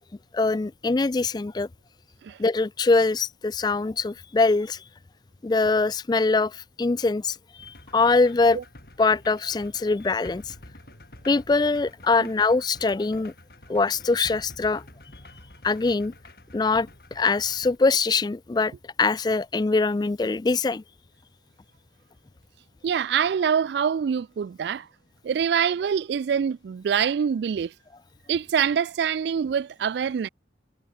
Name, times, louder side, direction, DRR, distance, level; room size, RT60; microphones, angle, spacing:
voice 1, 0.3-1.7 2.4-4.8 5.4-8.6 9.0-10.5 11.2-13.3 13.7-14.8 15.6-16.1 16.5-16.9 17.1-18.7 19.0-20.8, left 3 dB, 25° left, 0.3 m, -23 dB
sound 1, 7.6-17.8, left 1 dB, 55° left, 3.4 m, -48 dB
voice 2, 22.8-24.9 25.2-27.7 28.3-30.3, right 7 dB, 70° right, 0.3 m, -25 dB
head